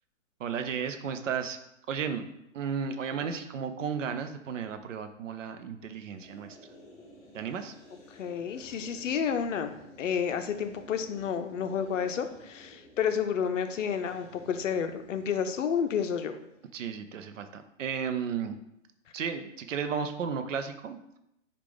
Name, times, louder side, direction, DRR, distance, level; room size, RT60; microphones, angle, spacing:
voice 1, 0.4-1.6 1.9-2.3 2.5-6.6 7.3-7.7 16.7-18.5 19.1-21.0, right 7 dB, 70° right, 8 dB, 0.6 m, -34 dB
sound 1, 6.2-16.6, equal, 20° left, 1.0 m, -54 dB
voice 2, 8.1-9.7 10.0-16.4, left 7 dB, 70° left, 8 dB, 0.6 m, -30 dB
4.8 x 2.4 x 3.5 m, 0.81 s
hypercardioid pair, 130°, 39 cm